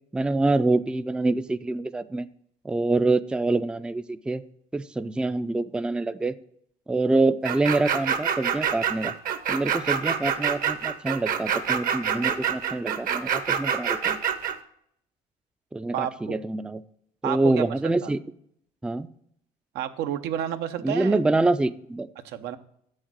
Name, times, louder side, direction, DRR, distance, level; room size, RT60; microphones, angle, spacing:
voice 1, 0.1-2.3 2.6-4.4 4.7-6.3 6.9-9.1 9.5-14.2 15.7-16.8 17.2-18.2 18.8-19.1 20.8-22.1, right 2 dB, 5° right, 12 dB, 0.3 m, -25 dB
sound 1, 7.4-14.5, right 8 dB, 55° right, 0.9 m, -26 dB
voice 2, 15.9-16.4 17.2-17.6 18.0-18.1 19.7-21.2 22.2-22.6, right 10 dB, 85° right, 9 dB, 0.8 m, -30 dB
7.9 x 6.4 x 6.0 m, 0.70 s
cardioid pair, 110°, 17 cm